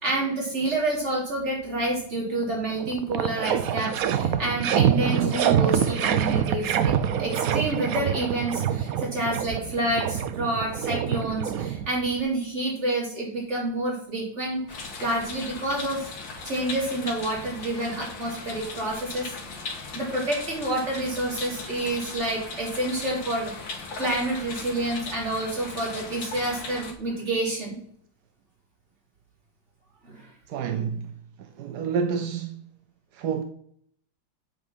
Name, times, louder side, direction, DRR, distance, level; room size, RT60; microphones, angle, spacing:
voice 1, 0.0-6.9 7.2-16.1 16.4-19.3 19.9-27.8 30.0-30.3, right 2 dB, 30° right, 3.5 m, -28 dB
sound 1, 2.4-2.5 2.8-12.2, right 9 dB, 85° right, 0.7 m, -25 dB
sound 2, 14.7-26.9, left 4 dB, 65° left, 2.2 m, -38 dB
voice 2, 30.5-31.1 31.4-32.6 33.1-33.4, right 6 dB, 70° right, 1.0 m, -29 dB
8.7 x 5.2 x 6.2 m
omnidirectional pair, 2.3 m